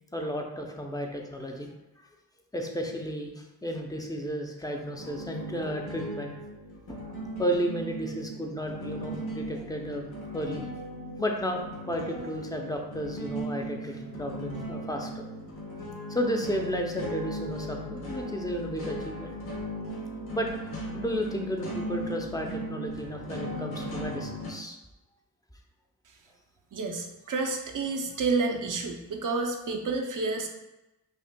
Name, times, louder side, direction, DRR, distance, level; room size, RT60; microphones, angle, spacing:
voice 1, 0.1-1.7 2.5-6.3 6.9-7.1 7.4-10.6 11.2-15.1 16.1-19.3 19.9-20.0 20.3-20.5 20.9-24.8, equal, 10° left, 2 dB, 0.6 m, -33 dB
sound 1, 5.0-24.5, equal, 85° left, 1.0 m, -38 dB
voice 2, 26.7-30.5, right 3 dB, 55° right, 3 dB, 0.7 m, -29 dB
5.5 x 2.4 x 2.2 m, 0.97 s
cardioid pair, 50°, 37 cm